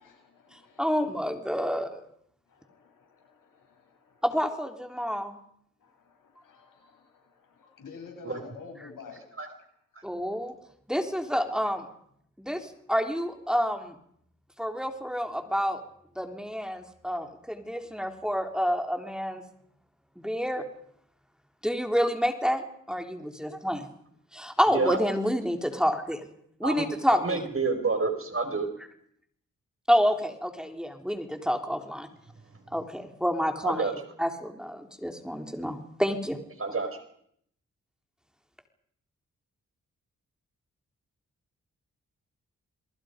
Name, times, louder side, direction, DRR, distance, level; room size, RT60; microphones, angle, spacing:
voice 1, 0.0-1.2 2.5-4.3 5.8-9.3 10.4-10.5 12.7-12.8, left 5 dB, 85° left, 2 dB, 7.3 m, -50 dB
voice 2, 0.8-2.0 4.2-5.4 10.0-10.5 10.9-11.8 12.4-12.6 12.9-13.9 14.6-15.8 16.2-19.4 20.2-20.6 21.6-22.6 22.9-23.8 24.3-26.2 26.6-27.4 29.9-32.1 32.7-33.9 34.2-36.4, equal, ahead, 4 dB, 3.5 m, -28 dB
voice 3, 24.7-25.0 26.6-28.7 33.6-33.9 36.6-36.9, right 4 dB, 45° right, 6 dB, 5.6 m, -28 dB
30.0 x 22.5 x 5.2 m, 0.69 s
cardioid pair, 50°, 32 cm